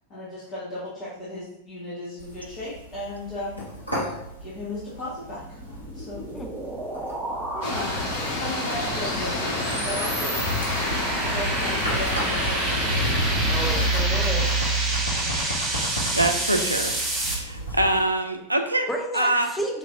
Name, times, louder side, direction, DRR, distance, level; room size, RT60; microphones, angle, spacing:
voice 1, 0.1-3.6 3.9-4.0 4.4-5.6 5.9-6.2 7.5-10.5 11.2-13.0, left 1 dB, 35° left, -10 dB, 1.4 m, -35 dB
sound 1, 2.2-18.0, right 2 dB, 85° left, 1.1 m, -32 dB
sound 2, 5.4-17.3, right 1 dB, 15° right, 1.4 m, -29 dB
sound 3, 7.6-13.9, left 2 dB, 55° left, 1.2 m, -28 dB
voice 2, 13.5-14.6 15.2-15.5 18.9-19.8, equal, 5° left, 1 dB, 0.7 m, -32 dB
voice 3, 16.1-17.0 17.3-18.9 19.1-19.5, right 1 dB, 85° right, 6 dB, 0.4 m, -24 dB
5.1 x 3.1 x 2.6 m, 0.86 s
figure-of-eight pair, 90°, 0 cm